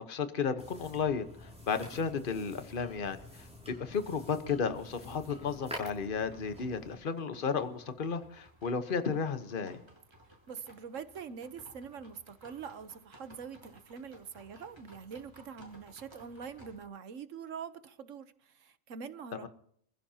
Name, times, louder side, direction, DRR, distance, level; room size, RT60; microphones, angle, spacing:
voice 1, 0.0-9.8 19.4-19.5, left 5 dB, 45° left, 1.3 m, -33 dB
sound 1, 0.6-6.9, left 1 dB, 5° right, 6.8 m, -48 dB
sound 2, 6.1-16.8, equal, 20° right, 4.8 m, -58 dB
voice 2, 10.5-19.5, right 6 dB, 75° right, 1.4 m, -44 dB
27.5 x 15.5 x 2.9 m
omnidirectional pair, 1.3 m